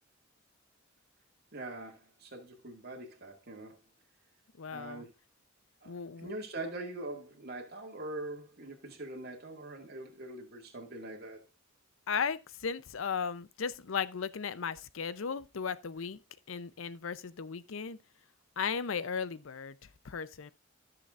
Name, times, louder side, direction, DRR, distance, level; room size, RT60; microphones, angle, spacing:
voice 1, 1.5-3.8 4.7-5.1 5.8-5.9 6.2-11.4, right 2 dB, 50° right, 2.0 m, -43 dB
voice 2, 4.6-5.0 5.9-6.3 12.1-16.2 16.5-18.0 18.6-19.8 20.0-20.5, left 6 dB, 75° left, 0.6 m, -36 dB
13.5 x 6.8 x 2.4 m
head